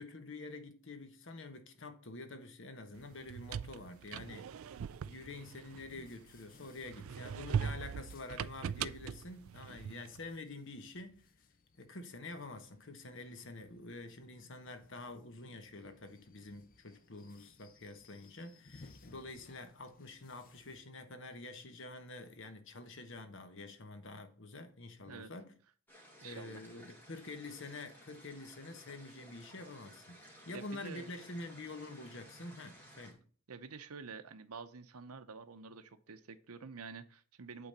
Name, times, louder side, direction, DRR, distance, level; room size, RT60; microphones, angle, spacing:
voice 1, 0.0-4.6 5.0-11.2 11.8-25.5 26.2-33.2, left 2 dB, 55° left, 1.2 m, -47 dB
sound 1, 2.9-20.8, left 3 dB, 40° left, 0.6 m, -64 dB
sound 2, 3.1-6.4 6.8-10.2, right 7 dB, 70° right, 0.4 m, -40 dB
voice 2, 9.7-10.0 25.1-25.3 26.2-26.6 30.5-31.1 33.5-37.7, right 5 dB, 85° right, 0.8 m, -49 dB
sound 3, 25.9-33.1, equal, 10° left, 2.1 m, -57 dB
8.6 x 3.9 x 6.7 m
head